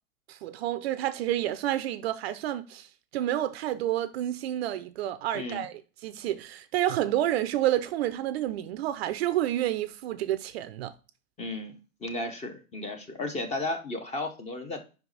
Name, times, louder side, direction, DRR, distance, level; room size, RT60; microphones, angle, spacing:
voice 1, 0.3-2.9 3.1-10.9, right 13 dB, 45° right, 0.5 m, -29 dB
voice 2, 5.3-5.7 11.4-11.8 12.0-14.8, left 2 dB, 15° left, 0.7 m, -34 dB
5.2 x 4.7 x 3.9 m
hypercardioid pair, 125°, 44 cm